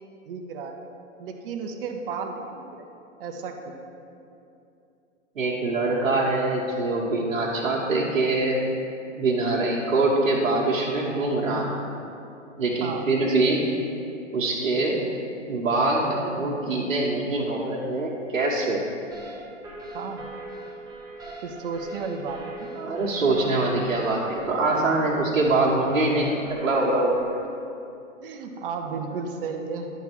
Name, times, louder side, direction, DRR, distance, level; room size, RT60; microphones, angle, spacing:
voice 1, 0.3-0.8 1.2-2.9 3.2-3.7 12.8-13.4 19.9-20.3 21.4-22.7 28.2-29.9, right 5 dB, 45° right, 4 dB, 0.9 m, -33 dB
voice 2, 5.3-8.7 9.2-11.7 12.6-13.7 14.3-15.0 15.5-18.8 22.8-27.2, right 2 dB, 85° right, -5 dB, 1.4 m, -24 dB
sound 1, 19.1-27.5, right 2 dB, 10° right, 0.8 m, -41 dB
10.5 x 3.6 x 6.0 m, 2.7 s
hypercardioid pair, 135°, 39 cm